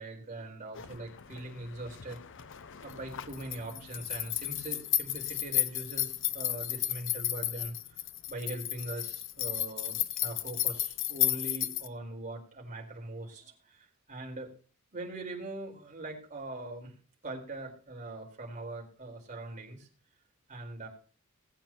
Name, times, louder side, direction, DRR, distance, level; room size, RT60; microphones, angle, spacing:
voice 1, 0.0-2.2 2.8-8.0 8.3-14.5 14.9-16.9 17.2-19.9 20.5-20.9, right 2 dB, 35° right, -1 dB, 4.3 m, -41 dB
sound 1, 0.7-11.9, left 13 dB, 60° left, 0.7 m, -34 dB
19.5 x 8.9 x 3.0 m, 0.38 s
head